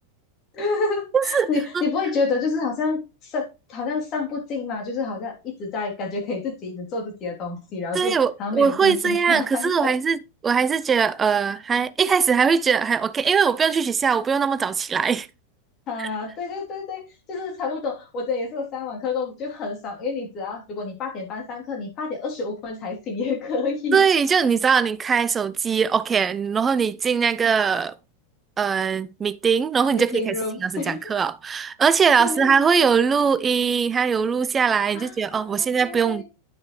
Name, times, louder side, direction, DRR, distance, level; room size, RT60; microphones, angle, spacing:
voice 1, 0.5-9.9 15.9-17.0 17.3-24.0 29.9-31.0 32.2-32.6 34.9-36.2, left 4 dB, 35° left, 3.0 m, -29 dB
voice 2, 1.1-1.5 1.7-1.8 7.9-15.3 16.0-16.1 23.9-27.9 28.6-36.2, right 6 dB, 20° right, 0.5 m, -21 dB
10.5 x 6.0 x 3.1 m
figure-of-eight pair, 90°, 0 cm